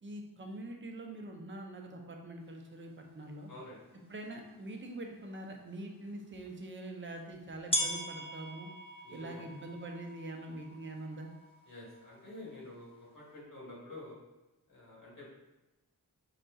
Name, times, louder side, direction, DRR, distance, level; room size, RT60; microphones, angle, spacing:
voice 1, 0.0-3.5 4.1-8.7 9.1-11.3, right 1 dB, 30° right, 2 dB, 0.5 m, -44 dB
voice 2, 3.5-3.8 9.0-9.5 11.7-14.2 14.7-15.3, left 1 dB, 55° left, -5 dB, 1.1 m, -49 dB
sound 1, 3.8-3.9 4.6-4.7 6.5-6.6 7.7-13.3, equal, 15° left, 0.5 m, -40 dB
4.9 x 2.6 x 2.3 m, 1.0 s
wide cardioid pair, 80°, 38 cm